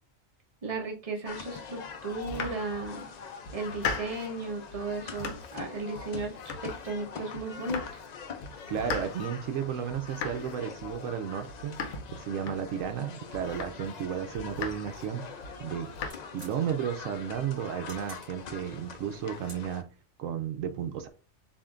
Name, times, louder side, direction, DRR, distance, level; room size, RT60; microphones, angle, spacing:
voice 1, 0.6-3.1 3.5-8.0, right 3 dB, 30° right, 0 dB, 0.9 m, -35 dB
sound 1, 1.2-19.8, left 6 dB, 65° left, 0.4 m, -44 dB
Domestic sounds home sounds, 2.1-3.1 3.5-4.4 4.7-5.7 6.0-7.1 7.3-8.1 8.4-13.0 13.3-14.0 14.3-15.1 15.4-16.1, left 4 dB, 85° left, 1.1 m, -39 dB
voice 2, 8.7-11.8 12.2-15.2 15.6-15.9 16.3-19.9 20.2-21.1, right 8 dB, 75° right, 7 dB, 1.0 m, -33 dB
sound 2, 14.7-20.0, right 2 dB, 55° right, 2.2 m, -56 dB
7.1 x 2.5 x 2.4 m, 0.36 s
omnidirectional pair, 1.4 m